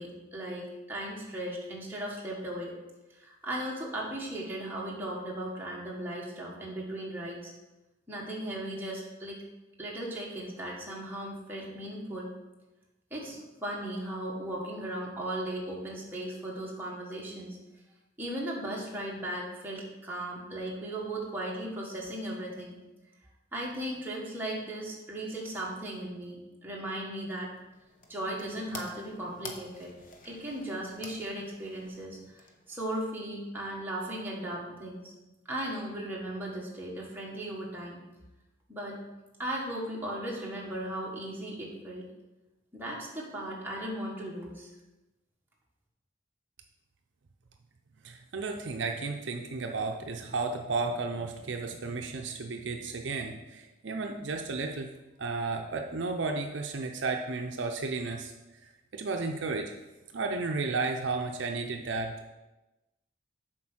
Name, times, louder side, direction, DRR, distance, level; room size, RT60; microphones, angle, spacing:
voice 1, 0.0-2.7 3.1-7.5 8.1-9.4 9.8-12.3 13.1-17.6 18.2-22.7 23.5-27.5 28.1-29.9 30.2-35.1 35.5-38.0 38.7-39.0 39.4-42.0 42.7-44.7, right 1 dB, 10° right, -4 dB, 1.5 m, -37 dB
sound 1, 27.5-32.9, left 3 dB, 40° left, 0.9 m, -48 dB
voice 2, 48.0-54.9 55.2-58.3 58.9-59.8 60.1-62.3, right 3 dB, 60° right, 3 dB, 0.6 m, -33 dB
7.5 x 4.5 x 6.2 m, 1.1 s
head